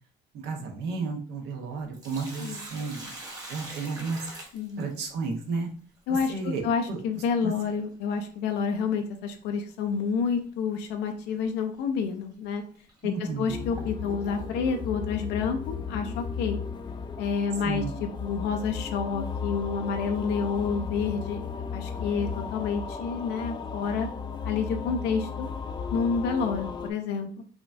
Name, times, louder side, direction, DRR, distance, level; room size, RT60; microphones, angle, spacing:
voice 1, 0.3-3.1 3.5-4.2 4.8-5.7 6.1-6.6 6.9-7.5 13.0-13.6 17.6-17.9, right 4 dB, 80° right, 2 dB, 0.9 m, -33 dB
Sink (filling or washing), 1.7-5.3 7.7-7.8 9.7-9.9 10.4-10.5 11.3-11.4 12.1-12.2 12.9-14.8, right 1 dB, 20° right, 1.2 m, -43 dB
voice 2, 4.5-4.9 6.1-12.6 13.0-16.6 17.2-24.1 24.4-25.5 25.9-27.3, left 5 dB, 85° left, 5 dB, 0.5 m, -29 dB
sound 1, 13.5-26.9, left 6 dB, 25° left, 0.4 m, -35 dB
4.9 x 2.3 x 2.5 m, 0.44 s
cardioid pair, 110°, 17 cm